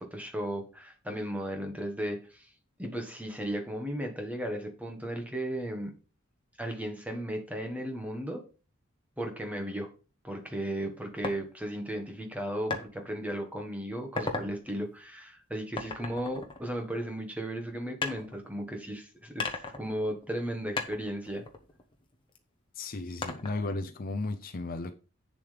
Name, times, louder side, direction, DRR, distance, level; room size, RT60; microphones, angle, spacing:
voice 1, 0.0-2.5 2.8-5.9 6.6-8.4 9.2-9.9 10.2-21.4, right 1 dB, 5° right, 1.4 m, -35 dB
sound 1, 11.2-11.4 12.7-12.9 13.4-13.6 14.0-14.5 15.8-17.2 18.0-18.9 19.4-20.5 20.8-22.4 23.2-23.8, left 3 dB, 25° left, 1.1 m, -36 dB
voice 2, 22.7-24.9, left 2 dB, 40° left, 0.6 m, -34 dB
8.8 x 7.0 x 3.4 m
head